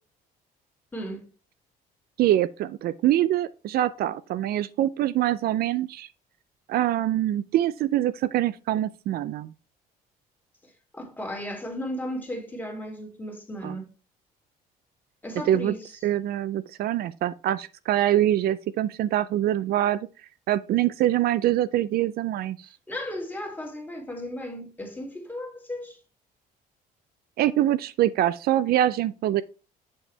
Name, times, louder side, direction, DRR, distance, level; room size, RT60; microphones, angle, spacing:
voice 1, 0.9-1.3 10.6-13.9 15.2-15.9 22.9-26.0, equal, 10° left, 2.5 m, -35 dB
voice 2, 2.2-6.1 6.7-9.5 13.6-13.8 15.5-15.7 16.0-20.1 20.5-22.7 27.4-29.4, right 13 dB, 65° right, 0.5 m, -24 dB
7.4 x 6.4 x 3.2 m
cardioid pair, 110°, 17 cm